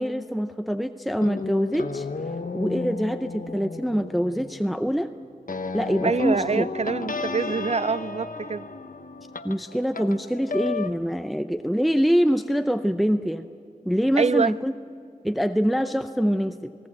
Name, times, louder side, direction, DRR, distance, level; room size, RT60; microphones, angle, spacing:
voice 1, 0.0-2.1 2.5-5.1 5.7-6.7 9.4-13.5 13.8-14.7 15.2-16.7, equal, ahead, 0.6 m, -24 dB
sound 1, 1.2-10.9, left 4 dB, 70° left, 0.9 m, -33 dB
voice 2, 6.0-8.7 14.2-14.5, right 5 dB, 50° right, 0.4 m, -25 dB
19.5 x 18.0 x 8.6 m
wide cardioid pair, 55°, 15 cm